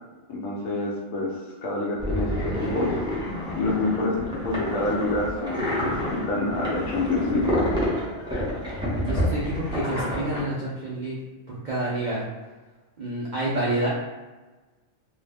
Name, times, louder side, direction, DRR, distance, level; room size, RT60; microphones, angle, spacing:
voice 1, 0.3-2.9 3.5-7.5, left 2 dB, 80° left, -2 dB, 1.1 m, -27 dB
sound 1, 2.0-10.4, equal, 5° right, 0.4 m, -28 dB
voice 2, 9.0-11.2 11.5-12.2 13.0-13.9, right 1 dB, 70° right, -6 dB, 0.4 m, -28 dB
2.7 x 2.0 x 3.3 m, 1.2 s
omnidirectional pair, 1.4 m